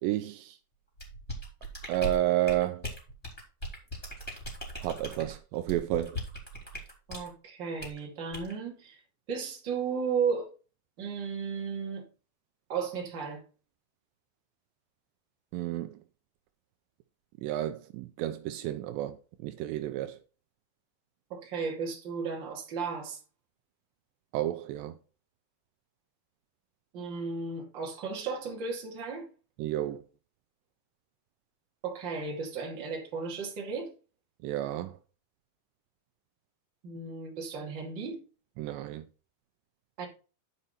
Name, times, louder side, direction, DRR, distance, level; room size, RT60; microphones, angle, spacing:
voice 1, 0.0-0.6 1.9-2.9 4.8-6.2 15.5-16.0 17.4-19.2 19.4-20.2 24.3-25.0 29.6-30.0 34.4-34.9 38.6-39.0, right 14 dB, 80° right, 2.7 m, -31 dB
sound 1, 1.0-7.3 7.8-8.0 8.3-8.5, right 1 dB, 10° left, 3.1 m, -39 dB
voice 2, 7.1-9.0 9.3-10.5 11.0-12.0 12.7-13.4 21.3-23.2 26.9-29.3 31.8-33.9 36.8-38.2 40.0-40.1, right 5 dB, 35° right, 2.4 m, -34 dB
11.5 x 5.5 x 4.2 m
omnidirectional pair, 5.1 m